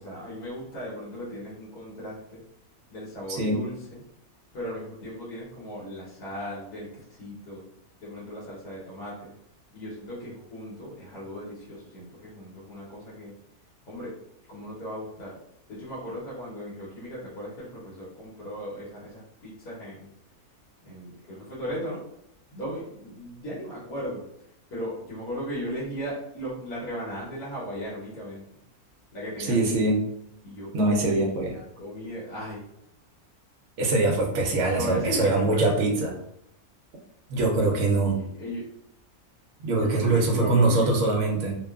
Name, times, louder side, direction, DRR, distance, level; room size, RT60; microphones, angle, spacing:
voice 1, 0.0-2.4 2.9-4.0 4.5-7.7 8.0-9.3 9.7-13.3 13.9-14.1 14.5-15.4 15.7-20.1 20.8-22.0 22.5-24.2 24.7-28.4 29.1-29.9 30.4-31.1 31.4-32.7 34.7-35.9 38.0-38.7 39.8-40.9, equal, 75° left, -8 dB, 1.4 m, -36 dB
voice 2, 29.5-30.0 30.7-31.5 33.8-36.1 37.3-38.2 39.6-41.5, right 2 dB, 65° right, -1 dB, 0.8 m, -23 dB
2.8 x 2.2 x 2.3 m, 0.76 s
omnidirectional pair, 1.6 m